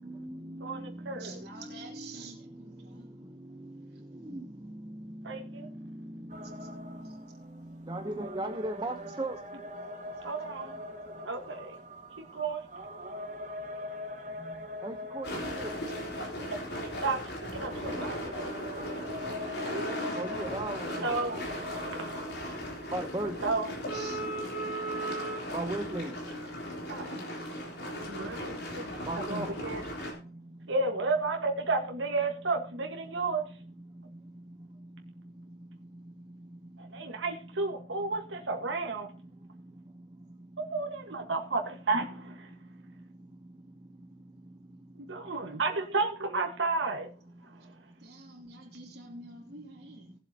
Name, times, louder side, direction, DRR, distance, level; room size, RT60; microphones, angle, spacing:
voice 1, 0.0-2.6 2.9-7.2 7.7-9.4 14.8-15.8 20.1-21.2 22.9-23.4 25.5-26.1 29.0-29.6, right 1 dB, 20° right, 0.9 m, -38 dB
voice 2, 0.6-1.3 5.2-5.7 10.2-10.8 11.2-11.8 12.2-12.6 16.7-17.2 17.5-18.2 19.7-20.0 21.0-21.4 23.4-23.7 26.9-27.2 27.9-28.8 29.3-29.8 30.7-33.4 36.8-39.1 40.6-42.5 45.0-47.1, right 3 dB, 80° right, 1.5 m, -32 dB
voice 3, 1.2-3.3 3.9-4.0 6.6-6.7 7.0-7.2 7.7-7.8 23.9-24.3 48.0-50.1, right 3 dB, 60° right, 3.1 m, -48 dB
sound 1, 6.3-22.9, left 1 dB, 40° right, 1.3 m, -42 dB
sound 2, 15.2-30.1, equal, 60° left, 3.5 m, -37 dB
19.0 x 7.6 x 2.9 m
head